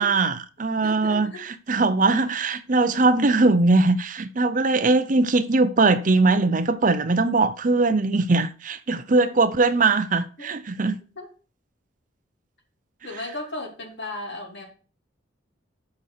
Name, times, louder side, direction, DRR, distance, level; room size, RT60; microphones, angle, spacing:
voice 1, 0.0-11.0, right 3 dB, 40° right, 0.6 m, -21 dB
voice 2, 0.8-1.4 9.1-9.3 10.4-10.5 11.2-11.3 13.0-14.6, left 2 dB, 60° left, 3.0 m, -36 dB
6.8 x 5.8 x 6.5 m
head